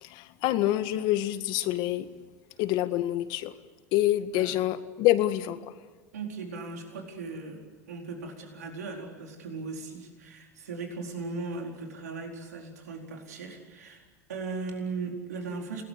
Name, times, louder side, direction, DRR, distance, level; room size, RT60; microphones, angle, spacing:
voice 1, 0.0-2.1 2.6-3.5 3.9-5.7, left 14 dB, 60° left, 10 dB, 1.8 m, -26 dB
voice 2, 6.1-14.0 14.3-15.8, right 4 dB, 85° right, 1 dB, 4.3 m, -38 dB
29.5 x 19.5 x 8.4 m, 1.5 s
hypercardioid pair, 85°, 9 cm